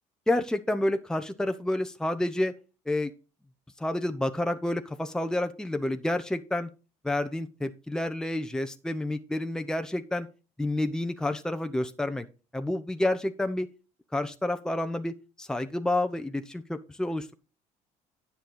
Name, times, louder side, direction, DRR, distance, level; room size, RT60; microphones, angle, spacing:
voice 1, 0.3-2.5 2.9-3.1 3.8-6.7 7.0-10.3 10.6-12.3 12.5-13.7 14.1-17.3, left 1 dB, 5° left, 7 dB, 0.9 m, -29 dB
10.0 x 6.8 x 3.9 m, 0.33 s
supercardioid pair, 85°, 14 cm